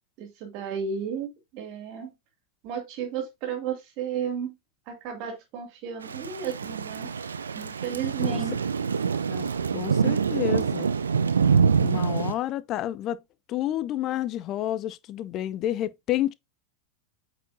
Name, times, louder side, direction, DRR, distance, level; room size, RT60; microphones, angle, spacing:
voice 1, 0.2-2.1 2.6-4.6 4.9-7.1 7.5-8.6, right 7 dB, 45° right, 2.4 m, -33 dB
Thunder / Rain, 6.0-12.3, right 6 dB, 70° right, 0.6 m, -25 dB
voice 2, 9.3-10.9 11.8-13.2 13.5-16.3, left 13 dB, 35° left, 0.5 m, -30 dB
8.8 x 4.8 x 2.7 m
figure-of-eight pair, 90°, 0 cm